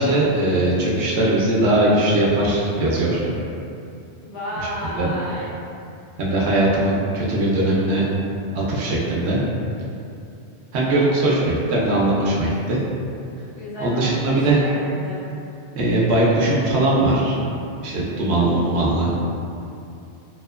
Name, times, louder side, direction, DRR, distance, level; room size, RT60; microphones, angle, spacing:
voice 1, 0.0-3.2 5.0-5.1 6.2-8.1 8.5-9.4 10.7-12.8 13.8-14.6 15.7-17.4 17.8-19.1, right 1 dB, 75° right, -6 dB, 0.9 m, -20 dB
voice 2, 4.2-5.5 10.8-11.3 13.5-15.3, equal, 85° left, -9 dB, 1.1 m, -32 dB
2.8 x 2.1 x 2.2 m, 2.6 s
omnidirectional pair, 1.1 m